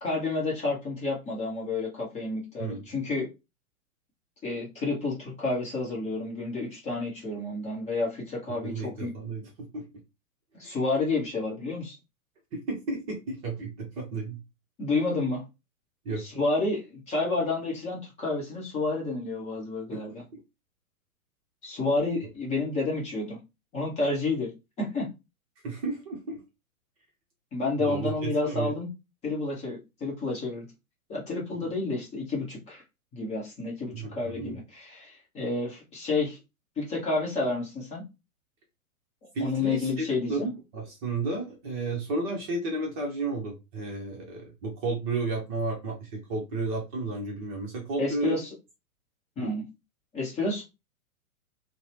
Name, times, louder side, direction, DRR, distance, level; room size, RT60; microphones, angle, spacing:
voice 1, 0.0-3.3 4.4-9.1 10.6-12.0 14.8-15.4 16.2-20.2 21.6-23.4 23.7-24.5 24.8-25.1 27.5-28.9 29.2-30.7 31.1-32.8 33.1-36.4 36.8-38.0 39.4-40.5 48.0-48.5 49.4-49.6 50.1-50.6, left 3 dB, 15° left, -3 dB, 0.8 m, -30 dB
voice 2, 8.6-9.9 12.5-14.4 16.0-16.2 19.9-20.0 20.3-20.4 25.6-26.4 27.8-28.7 33.9-34.6 39.3-48.4 49.4-49.5, right 3 dB, 25° right, 0 dB, 0.7 m, -32 dB
2.7 x 2.1 x 3.2 m, 0.25 s
figure-of-eight pair, 110°, 43 cm